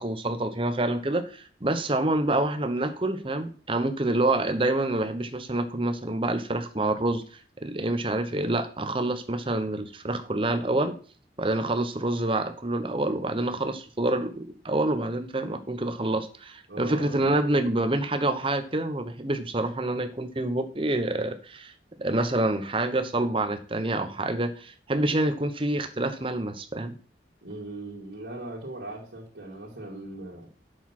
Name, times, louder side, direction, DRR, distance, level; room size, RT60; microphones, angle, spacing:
voice 1, 0.0-7.2 7.6-10.9 11.4-21.7 22.0-26.9, right 2 dB, 30° right, 9 dB, 1.0 m, -27 dB
voice 2, 16.7-17.3 27.4-30.5, right 2 dB, 85° right, -6 dB, 2.7 m, -39 dB
7.4 x 6.6 x 6.0 m, 0.40 s
head